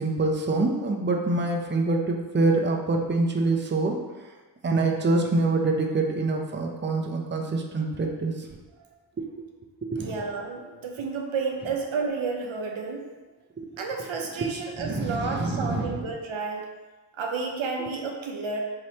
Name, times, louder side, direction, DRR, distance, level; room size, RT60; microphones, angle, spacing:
voice 1, 0.0-4.0 4.6-8.6 9.3-9.4 9.8-10.2 13.6-13.7 14.4-16.1 17.8-17.9, right 3 dB, 25° right, 1 dB, 0.5 m, -26 dB
voice 2, 9.9-13.0 13.8-16.6 17.2-18.6, right 4 dB, 85° right, 1 dB, 0.7 m, -31 dB
3.1 x 2.9 x 4.2 m, 1.3 s
cardioid pair, 45°, 46 cm